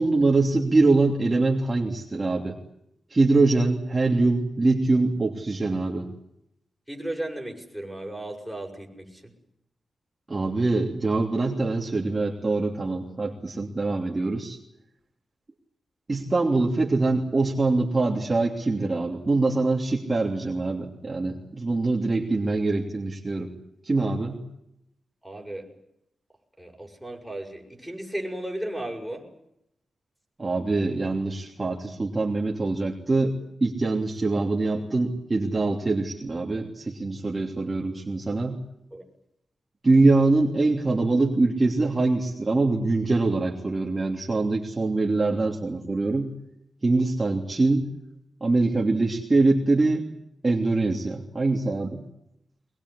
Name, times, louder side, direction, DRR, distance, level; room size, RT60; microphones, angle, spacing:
voice 1, 0.0-2.6 3.1-6.1 10.3-14.6 16.1-23.5 23.8-24.4 30.4-38.6 39.8-46.3 46.8-47.9 48.4-50.1 50.4-52.0, right 3 dB, 30° right, 0 dB, 3.1 m, -24 dB
voice 2, 6.9-9.3 25.2-25.7 26.6-29.3 38.9-39.0, right 1 dB, ahead, 0 dB, 7.1 m, -35 dB
23.0 x 21.0 x 9.8 m, 0.79 s
wide cardioid pair, 95°, 0 cm